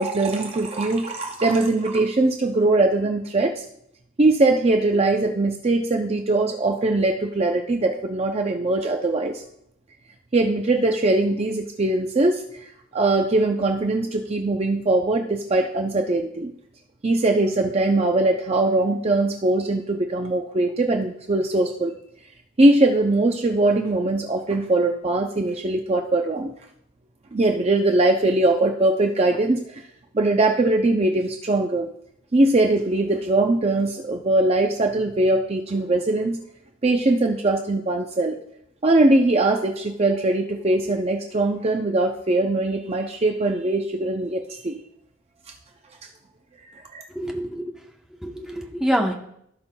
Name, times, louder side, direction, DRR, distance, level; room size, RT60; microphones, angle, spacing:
voice 1, 0.0-3.7 4.2-9.4 10.3-12.6 12.9-16.5 17.0-21.9 22.6-26.5 27.3-29.8 30.1-31.9 32.3-36.4 36.8-38.4 38.8-44.8 46.9-47.0, right 2 dB, 30° right, 3 dB, 0.5 m, -21 dB
voice 2, 47.2-47.6 48.2-49.1, equal, 5° right, 1 dB, 0.9 m, -25 dB
16.5 x 5.6 x 2.3 m, 0.74 s
head